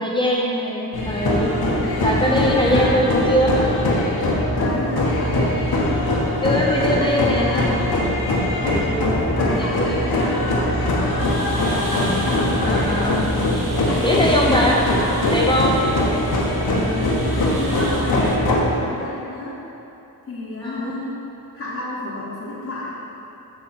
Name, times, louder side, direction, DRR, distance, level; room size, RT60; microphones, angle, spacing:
voice 1, 0.0-1.5 2.0-3.5 6.4-7.8 8.5-9.9 12.6-13.3 14.0-14.8 15.3-15.8 16.7-17.0 20.6-20.9, equal, 15° left, -3 dB, 0.6 m, -22 dB
sound 1, 0.9-18.7, left 1 dB, 90° left, 1.4 m, -21 dB
voice 2, 2.6-3.0 4.6-5.4 7.0-8.1 9.0-12.6 13.7-15.1 17.5-19.6 20.3-21.2 21.5-22.9, left 2 dB, 40° left, -8 dB, 1.1 m, -31 dB
sound 2, 11.2-18.4, right 2 dB, 60° right, 1.1 m, -34 dB
8.5 x 6.1 x 4.3 m, 2.9 s
wide cardioid pair, 140°, 36 cm